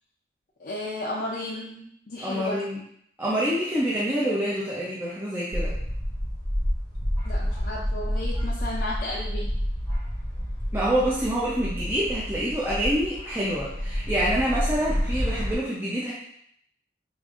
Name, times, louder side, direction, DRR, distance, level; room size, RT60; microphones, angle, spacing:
voice 1, 0.6-2.6 7.2-9.6, left 1 dB, 55° left, -5 dB, 0.5 m, -34 dB
voice 2, 2.2-2.8 3.2-5.7 10.7-16.1, equal, 10° right, -7 dB, 0.5 m, -26 dB
sound 1, 5.5-15.6, equal, 15° left, 0.8 m, -29 dB
5.0 x 2.5 x 2.4 m, 0.69 s
head